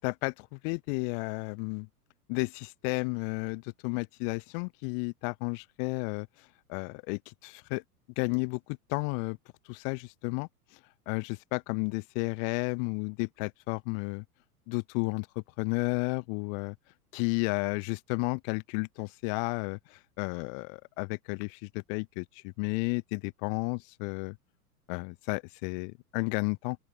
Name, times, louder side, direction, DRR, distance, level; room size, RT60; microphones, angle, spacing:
voice 1, 0.0-1.9 2.3-7.8 8.2-9.4 9.6-10.8 11.1-14.2 14.7-15.3 15.6-16.7 17.1-24.4 24.9-26.8, left 40 dB or more, 35° left, 0.7 m, -32 dB
open air
figure-of-eight pair, 95°, 45 cm